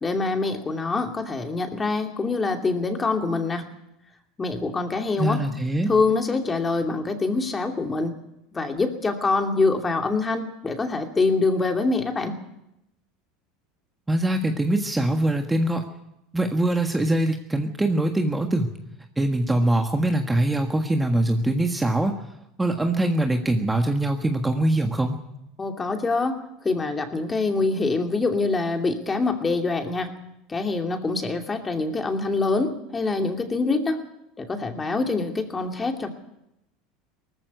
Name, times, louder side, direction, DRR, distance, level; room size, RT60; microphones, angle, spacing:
voice 1, 0.0-3.7 4.4-5.4 5.9-8.1 8.5-12.4 25.6-30.1 30.5-34.0 34.4-36.1, left 3 dB, 20° left, 5 dB, 2.7 m, -25 dB
voice 2, 5.2-5.9 14.1-15.8 16.3-18.7 19.2-22.1 22.6-25.2, right 1 dB, 10° right, 4 dB, 1.6 m, -23 dB
19.0 x 14.5 x 9.4 m, 0.84 s
supercardioid pair, 115°, 0 cm